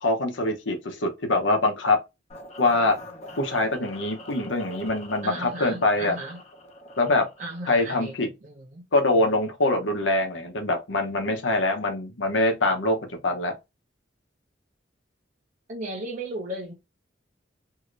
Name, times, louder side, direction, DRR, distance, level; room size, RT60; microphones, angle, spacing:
voice 1, 0.0-2.0 2.6-3.0 3.4-6.2 7.0-7.3 7.7-8.3 8.9-13.6, left 2 dB, 85° left, 0.9 m, -24 dB
sound 1, 2.3-8.2, left 1 dB, 35° left, 0.7 m, -44 dB
voice 2, 5.2-6.4 7.4-8.1 8.4-8.8 15.7-16.7, right 1 dB, 40° right, 0.6 m, -35 dB
2.8 x 2.5 x 3.1 m
head